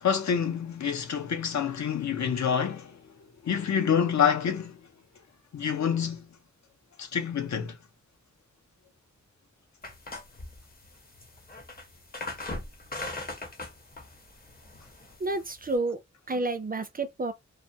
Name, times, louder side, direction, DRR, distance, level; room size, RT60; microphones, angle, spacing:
voice 1, 0.0-3.0 3.4-4.8 5.5-6.3 7.0-7.8, left 7 dB, 70° left, 0.6 m, -27 dB
sound 1, 9.8-15.8, left 2 dB, 30° left, 0.7 m, -40 dB
voice 2, 15.2-16.0 16.3-17.3, right 2 dB, 30° right, 0.4 m, -30 dB
2.3 x 2.2 x 2.6 m
wide cardioid pair, 100°, 29 cm